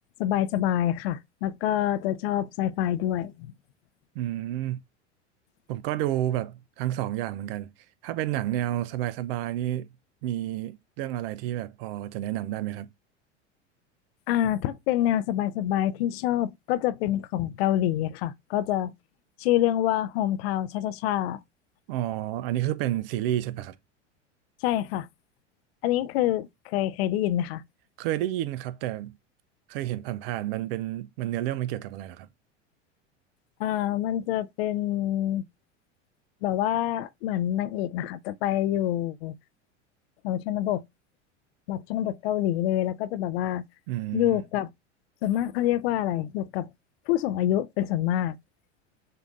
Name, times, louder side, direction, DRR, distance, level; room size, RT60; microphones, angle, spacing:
voice 1, 0.2-3.5 14.3-18.9 19.4-21.4 24.6-25.1 25.8-27.6 33.6-35.5 36.4-39.3 40.2-40.8 41.7-43.6 44.1-44.7 45.2-46.7 47.1-48.4, left 12 dB, 60° left, 0.4 m, -26 dB
voice 2, 4.2-4.8 5.7-7.7 8.0-9.9 10.2-12.9 21.9-23.8 28.0-29.2 29.7-32.3 43.9-44.4, right 13 dB, 55° right, 0.5 m, -30 dB
6.4 x 2.5 x 2.5 m
hypercardioid pair, 85°, 36 cm